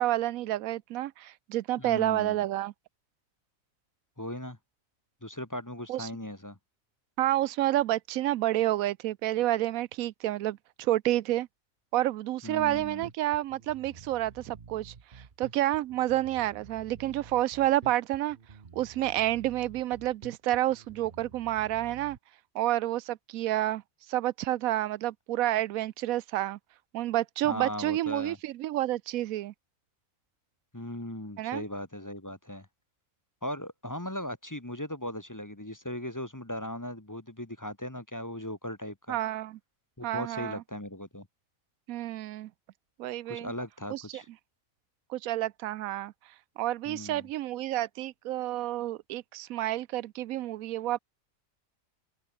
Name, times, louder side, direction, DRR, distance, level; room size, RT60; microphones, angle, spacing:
voice 1, 0.0-2.7 5.9-6.1 7.2-11.5 11.9-18.4 18.7-22.2 22.5-23.8 24.1-26.6 26.9-29.5 31.4-31.6 39.1-39.6 40.0-40.6 41.9-42.5 43.0-43.5 43.9-44.2 45.1-51.0, right 14 dB, 85° right, 1.0 m, -29 dB
voice 2, 1.8-2.4 4.2-4.6 5.2-6.6 12.4-13.1 27.4-28.4 30.7-32.7 33.4-39.2 40.0-41.3 43.3-44.3 46.9-47.3, left 1 dB, 15° left, 1.4 m, -38 dB
Bass guitar, 12.6-22.2, right 5 dB, 40° right, 1.3 m, -50 dB
open air
omnidirectional pair, 1.4 m